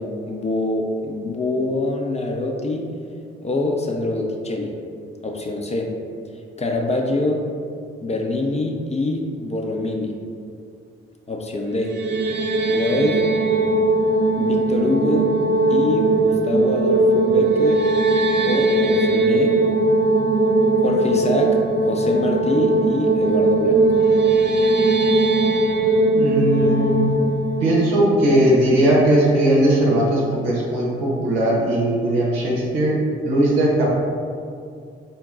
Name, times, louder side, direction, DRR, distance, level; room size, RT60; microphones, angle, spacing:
voice 1, 0.0-2.9 3.4-4.8 5.2-6.0 6.6-7.4 8.0-10.2 11.3-12.0 12.7-13.3 14.4-15.4 15.7-17.9 18.4-19.6 20.8-21.6 21.9-23.9, left 2 dB, 20° left, 1 dB, 0.5 m, -24 dB
sound 1, 11.8-28.9, right 2 dB, 40° right, 0.4 m, -19 dB
voice 2, 26.2-27.1 27.6-33.0 33.2-33.9, right 1 dB, 80° right, -3 dB, 0.7 m, -18 dB
4.0 x 2.2 x 3.6 m, 2.3 s
figure-of-eight pair, 40°, 29 cm